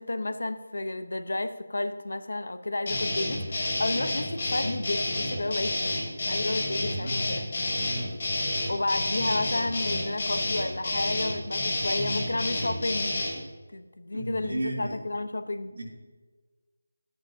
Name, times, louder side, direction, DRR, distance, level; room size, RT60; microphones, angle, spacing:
voice 1, 0.0-7.4 8.7-13.2 13.7-15.7, left 2 dB, 70° left, 10 dB, 0.9 m, -31 dB
sound 1, 2.9-13.4, left 2 dB, 30° left, 1.3 m, -29 dB
voice 2, 7.8-8.1 14.1-15.0 15.7-15.8, right 1 dB, 70° right, -2 dB, 3.1 m, -34 dB
12.5 x 10.0 x 2.8 m, 1.3 s
figure-of-eight pair, 180°, 0 cm